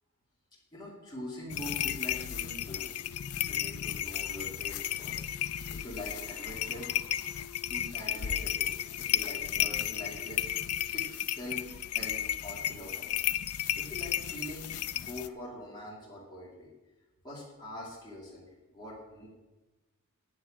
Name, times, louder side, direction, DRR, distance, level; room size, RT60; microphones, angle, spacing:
voice 1, 0.7-2.9 3.4-6.9 7.6-16.7 17.2-19.3, left 1 dB, 20° left, -6 dB, 2.6 m, -44 dB
sound 1, 1.3-12.3, left 5 dB, 50° left, 4.5 m, -55 dB
sound 2, 1.5-15.3, left 11 dB, 90° left, 0.5 m, -33 dB
9.0 x 7.4 x 8.7 m, 1.1 s
head